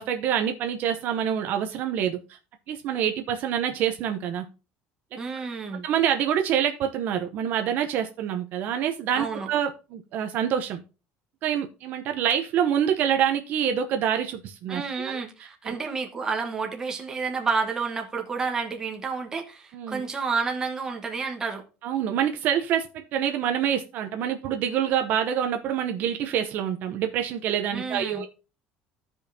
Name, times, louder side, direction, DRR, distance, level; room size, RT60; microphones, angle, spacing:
voice 1, 0.0-2.4 2.7-4.5 5.4-5.5 5.8-10.8 11.4-15.2 15.6-15.8 19.7-20.0 21.8-28.3, right 9 dB, 50° right, 0.8 m, -26 dB
voice 2, 5.2-5.9 9.2-9.5 14.7-21.6 27.7-28.3, right 4 dB, 15° right, 1.1 m, -30 dB
14.5 x 5.4 x 2.7 m
cardioid pair, 165°, 4 cm